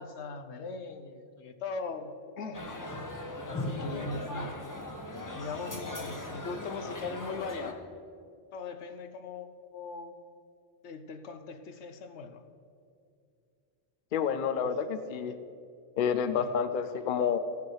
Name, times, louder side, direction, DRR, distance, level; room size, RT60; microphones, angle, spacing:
voice 1, 0.0-2.6 3.5-4.6 5.3-7.8 8.5-10.2 10.8-12.4 16.4-16.5, left 4 dB, 80° left, 8 dB, 1.0 m, -40 dB
sound 1, 2.5-7.7, left 1 dB, 20° left, 0.8 m, -38 dB
voice 2, 14.1-15.4 16.0-17.4, left 7 dB, 55° left, 10 dB, 0.7 m, -29 dB
15.5 x 7.0 x 4.7 m, 2.4 s
omnidirectional pair, 1.2 m